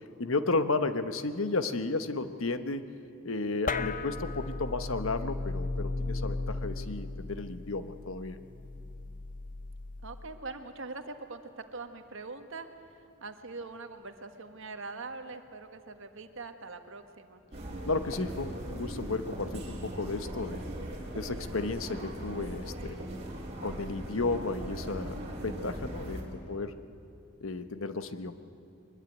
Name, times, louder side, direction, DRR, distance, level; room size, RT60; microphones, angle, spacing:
voice 1, 0.2-2.9 3.2-8.4 17.9-20.6 21.1-23.0 23.6-26.7 27.4-28.4, left 3 dB, 75° left, 10 dB, 1.1 m, -33 dB
sound 1, 3.7-10.4, left 3 dB, 40° left, 0.7 m, -36 dB
voice 2, 10.0-12.7 13.2-17.4, right 3 dB, 65° right, 7 dB, 1.6 m, -43 dB
sound 2, 17.5-26.2, right 1 dB, 30° right, 4.2 m, -39 dB
23.0 x 21.0 x 9.3 m, 2.6 s
head